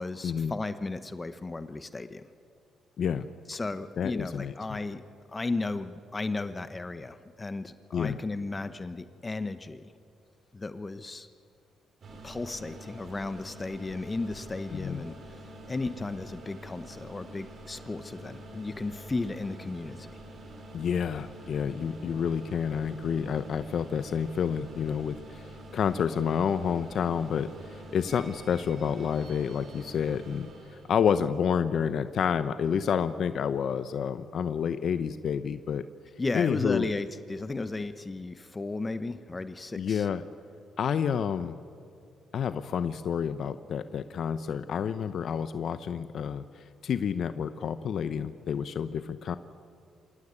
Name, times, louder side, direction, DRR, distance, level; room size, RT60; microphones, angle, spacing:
voice 1, 0.0-2.2 3.5-5.0 5.3-9.9 10.5-11.3 12.2-15.4 15.7-20.1 36.2-40.1, left 3 dB, 25° left, 11 dB, 1.0 m, -34 dB
voice 2, 4.0-4.5 7.9-8.2 14.7-15.0 20.7-30.5 30.9-35.9 36.3-36.9 39.7-40.2 40.8-41.6 42.3-49.4, left 7 dB, 60° left, 12 dB, 0.8 m, -29 dB
sound 1, 12.0-30.9, right 1 dB, 50° right, 3.9 m, -46 dB
26.5 x 17.5 x 9.7 m, 2.4 s
cardioid pair, 90°, 0 cm